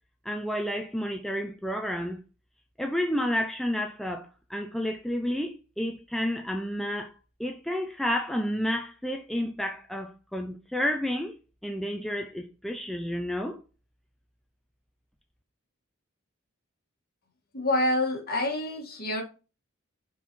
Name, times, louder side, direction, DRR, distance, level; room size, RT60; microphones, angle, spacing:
voice 1, 0.3-2.2 2.8-7.1 7.4-11.3 11.6-13.6, equal, ahead, 0.5 m, -30 dB
voice 2, 17.5-19.2, left 1 dB, 45° left, 1.9 m, -27 dB
6.0 x 4.2 x 4.6 m
head